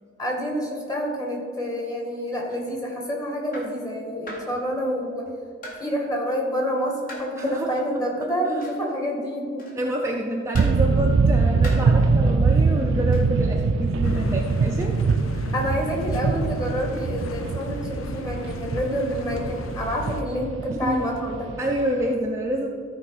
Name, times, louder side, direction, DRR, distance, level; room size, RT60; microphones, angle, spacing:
voice 1, 0.2-5.3 5.8-9.7 11.7-11.8 15.5-21.6, equal, 20° left, 0 dB, 1.8 m, -28 dB
sound 1, 2.5-2.7 3.5-3.8 4.3-4.6 5.6-5.9 7.1-7.3 8.6-8.9 9.6-9.9 10.5-10.8 11.6-11.9 13.1-13.3, left 1 dB, 45° left, 2.0 m, -39 dB
voice 2, 7.4-7.7 9.8-15.0 15.3-15.5 20.7-21.1 21.6-22.7, equal, 15° right, -1 dB, 0.6 m, -27 dB
sound 2, 10.5-22.1, right 4 dB, 70° right, 0.4 m, -23 dB
sound 3, 14.0-20.2, left 4 dB, 90° left, 0.5 m, -37 dB
13.5 x 4.6 x 5.7 m, 2.3 s
head